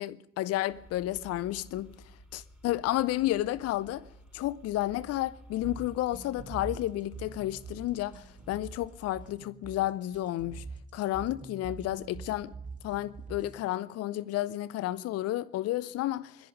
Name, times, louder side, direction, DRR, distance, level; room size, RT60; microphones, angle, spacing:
voice 1, 0.0-2.0 2.3-4.1 4.3-10.6 10.9-12.5 12.8-16.4, left 15 dB, 50° left, 0.5 m, -31 dB
sound 1, 0.7-9.3, right 1 dB, ahead, 5.5 m, -54 dB
sound 2, 5.6-13.6, right 4 dB, 25° right, 2.6 m, -44 dB
25.0 x 10.5 x 5.3 m
hypercardioid pair, 45°, 32 cm